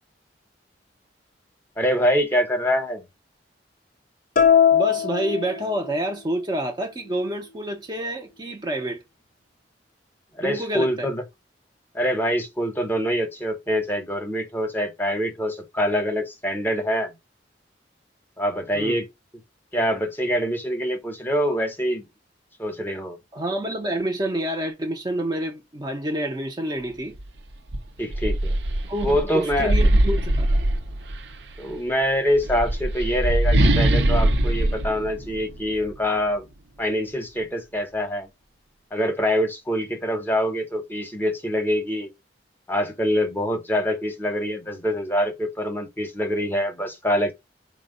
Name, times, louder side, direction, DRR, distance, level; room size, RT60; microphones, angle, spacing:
voice 1, 1.8-3.1 10.4-11.2 11.9-17.1 18.4-19.1 19.7-22.1 22.6-23.2 28.0-28.5 29.0-29.7 31.6-36.5 36.8-38.3 38.9-42.1 42.7-47.3, equal, 10° left, 0.8 m, -25 dB
sound 1, 4.4-6.2, left 8 dB, 50° left, 0.5 m, -20 dB
voice 2, 4.7-9.0 10.4-11.1 18.7-19.0 23.3-27.2 28.8-30.6, right 1 dB, 25° right, 0.5 m, -28 dB
Kong Roar complete, 27.1-27.3 27.7-31.3 32.3-35.9, right 1 dB, 75° right, 0.6 m, -22 dB
4.3 x 2.0 x 3.7 m
head